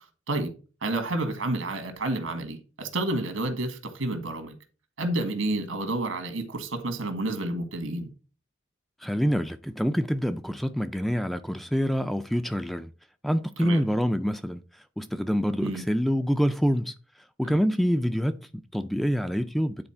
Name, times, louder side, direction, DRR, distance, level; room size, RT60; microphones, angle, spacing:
voice 1, 0.8-4.5 5.0-8.1 13.6-13.8 15.6-15.8 17.4-17.6, right 2 dB, 85° right, 1.7 m, -30 dB
voice 2, 9.0-12.9 13.2-14.6 15.0-16.9 17.4-19.9, equal, ahead, 0.3 m, -26 dB
9.6 x 4.2 x 4.3 m
head